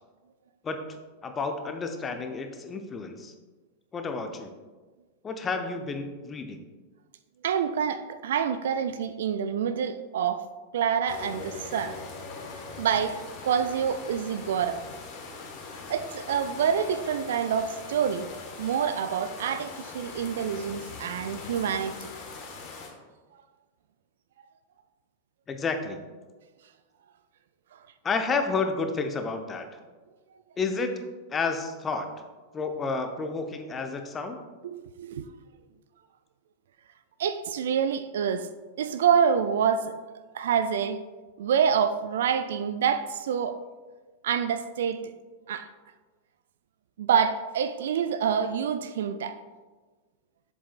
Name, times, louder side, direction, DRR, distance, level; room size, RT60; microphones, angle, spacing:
voice 1, 1.2-3.3 3.9-4.5 5.2-6.6 25.5-26.0 28.0-29.7 30.6-30.9 31.3-32.1 32.5-34.4, left 4 dB, 20° left, 0.7 m, -30 dB
voice 2, 7.4-10.5 10.7-12.0 12.8-13.2 13.4-14.8 15.9-18.3 18.6-22.1 34.6-35.3 37.2-38.5 38.8-39.9 40.3-41.0 41.4-43.6 44.2-45.0 45.5-45.7 47.0-49.4, right 7 dB, 60° right, 0.3 m, -27 dB
sound 1, 11.1-22.9, left 4 dB, 40° left, 1.2 m, -41 dB
7.2 x 7.0 x 2.4 m
figure-of-eight pair, 90°, 0 cm